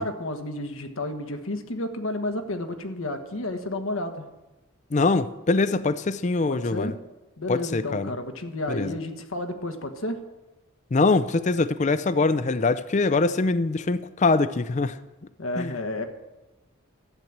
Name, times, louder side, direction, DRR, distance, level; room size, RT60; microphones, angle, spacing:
voice 1, 0.0-4.2 6.5-7.0 7.4-10.2 15.4-16.0, left 1 dB, 80° left, 1.4 m, -31 dB
voice 2, 4.9-6.9 7.5-8.1 8.7-8.9 10.9-15.0 15.6-15.7, left 3 dB, 35° left, 0.4 m, -23 dB
13.0 x 9.3 x 7.3 m
head